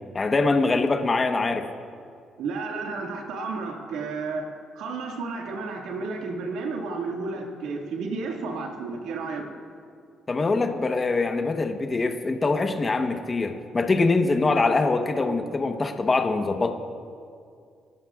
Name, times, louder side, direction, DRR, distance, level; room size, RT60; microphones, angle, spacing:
voice 1, 0.1-1.7 10.3-16.7, left 3 dB, 30° left, 5 dB, 1.1 m, -23 dB
voice 2, 2.4-9.5, right 4 dB, 90° right, 1 dB, 2.0 m, -32 dB
27.0 x 14.5 x 2.4 m, 2.2 s
cardioid pair, 90°, 0 cm